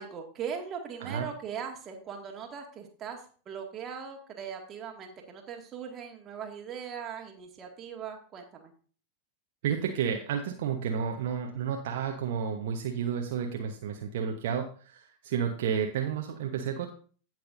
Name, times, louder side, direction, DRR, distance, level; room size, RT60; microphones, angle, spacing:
voice 1, 0.0-3.2 3.5-8.7, right 7 dB, 30° right, 2 dB, 2.0 m, -40 dB
voice 2, 9.6-16.9, right 7 dB, 55° right, 3 dB, 1.0 m, -31 dB
16.5 x 6.0 x 2.6 m, 0.41 s
figure-of-eight pair, 90°, 0 cm